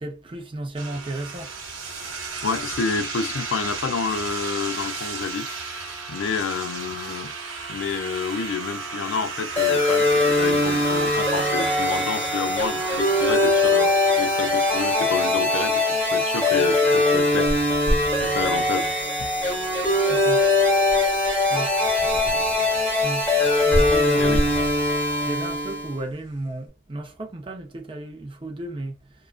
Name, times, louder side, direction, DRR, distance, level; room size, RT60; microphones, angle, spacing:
voice 1, 0.0-1.6 20.1-20.4 21.5-21.9 23.0-23.3 23.6-24.4 25.2-29.1, right 2 dB, 25° right, 0.5 m, -33 dB
sound 1, 0.8-14.9, right 4 dB, 80° right, 0.7 m, -34 dB
voice 2, 2.4-7.3 7.7-17.9 18.2-19.3 24.2-24.4, left 5 dB, 70° left, 0.3 m, -29 dB
sound 2, 9.6-26.0, left 2 dB, 10° left, 0.9 m, -21 dB
sound 3, 17.1-26.5, equal, 40° left, 0.7 m, -32 dB
2.4 x 2.2 x 2.3 m
head